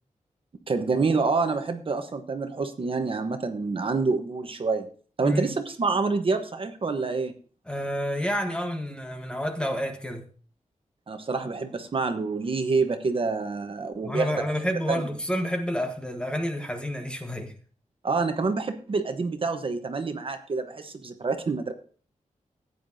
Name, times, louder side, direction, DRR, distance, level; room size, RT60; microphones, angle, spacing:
voice 1, 0.7-4.9 5.2-7.3 11.1-14.3 14.9-15.1 18.0-21.7, right 4 dB, 45° right, 1.1 m, -27 dB
voice 2, 5.2-5.5 7.7-10.3 14.0-17.5, equal, 5° left, 1.2 m, -29 dB
15.5 x 9.5 x 2.7 m
wide cardioid pair, 175°, 13 cm